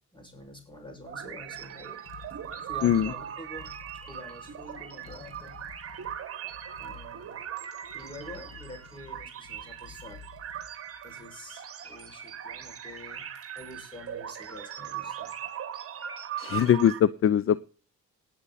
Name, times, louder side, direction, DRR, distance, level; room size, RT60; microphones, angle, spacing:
voice 1, 0.1-2.0 2.6-3.8 4.1-5.7 6.8-7.5 7.9-10.2 11.0-13.3 13.6-15.3, left 1 dB, 15° left, 6.3 m, -47 dB
sound 1, 0.8-11.3, left 5 dB, 80° left, 2.6 m, -51 dB
sound 2, 1.1-17.0, right 9 dB, 50° right, 1.7 m, -40 dB
voice 2, 16.4-17.6, left 9 dB, 45° left, 0.6 m, -22 dB
19.0 x 6.9 x 4.2 m
cardioid pair, 90°, 30 cm